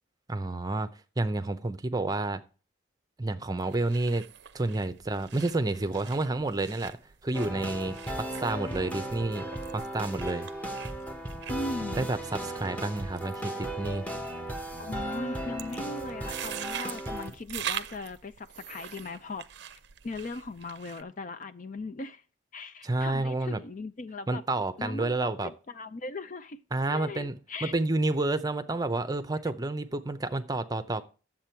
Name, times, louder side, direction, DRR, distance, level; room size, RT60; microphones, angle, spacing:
voice 1, 0.3-0.9 1.2-2.4 3.2-4.2 4.5-7.0 7.2-10.5 12.0-14.1 22.8-23.6 24.3-25.5 26.7-31.0, right 2 dB, 20° right, 0.6 m, -30 dB
sound 1, 3.6-21.0, right 10 dB, 60° right, 0.6 m, -44 dB
sound 2, 7.3-17.3, right 1 dB, 10° left, 1.2 m, -36 dB
voice 2, 11.5-12.1 14.8-19.5 20.0-22.2 22.5-24.4 24.8-26.6 26.9-27.7, left 3 dB, 40° left, 0.5 m, -38 dB
11.0 x 7.6 x 4.5 m
head